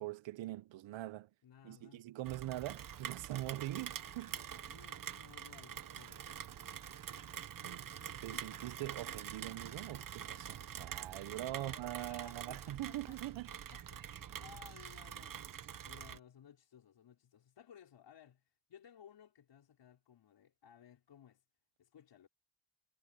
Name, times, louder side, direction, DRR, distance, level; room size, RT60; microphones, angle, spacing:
voice 1, 0.0-1.3 1.6-4.4 7.6-7.9 8.2-13.5, right 15 dB, 70° right, 0.8 m, -43 dB
voice 2, 1.4-2.0 4.7-6.4 8.3-8.5 11.4-21.4 21.8-22.3, left 9 dB, 60° left, 5.0 m, -60 dB
Rain, 2.3-16.2, right 9 dB, 45° right, 1.1 m, -46 dB
cardioid pair, 125°, 47 cm